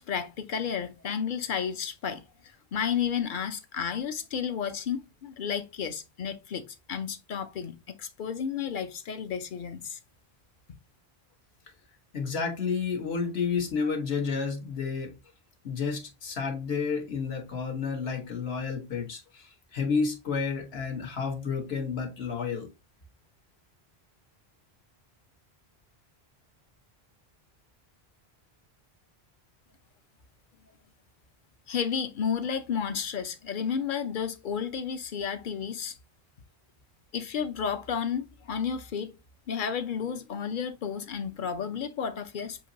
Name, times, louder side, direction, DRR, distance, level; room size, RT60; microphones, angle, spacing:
voice 1, 0.0-2.2 2.7-6.6 6.9-10.0 31.7-35.9 37.1-39.1 39.5-42.6, left 7 dB, 55° left, 0.7 m, -32 dB
voice 2, 12.1-15.1 15.6-19.4 19.7-22.7, left 5 dB, 75° left, 1.3 m, -30 dB
6.5 x 2.8 x 2.6 m
omnidirectional pair, 1.1 m